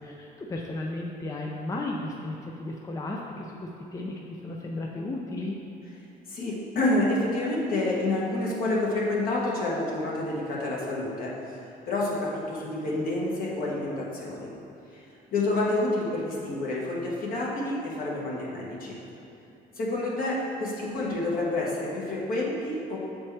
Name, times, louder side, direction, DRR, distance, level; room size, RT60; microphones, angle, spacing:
voice 1, 0.0-5.6, left 2 dB, 20° left, -1 dB, 0.4 m, -34 dB
voice 2, 6.3-11.4 11.9-14.5 14.9-15.0 15.3-19.0 19.8-23.0, left 2 dB, 60° left, -4 dB, 1.4 m, -28 dB
7.4 x 4.3 x 3.3 m, 2.7 s
cardioid pair, 110°, 17 cm